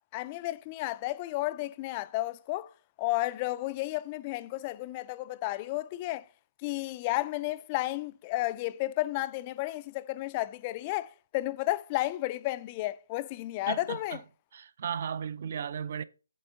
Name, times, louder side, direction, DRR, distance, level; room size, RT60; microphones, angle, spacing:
voice 1, 0.1-2.7 3.0-6.3 6.6-14.2, left 17 dB, 25° left, 0.3 m, -32 dB
voice 2, 13.7-14.2 14.5-16.0, right 7 dB, 45° right, 0.5 m, -35 dB
8.4 x 3.5 x 5.5 m
hypercardioid pair, 160°, 0 cm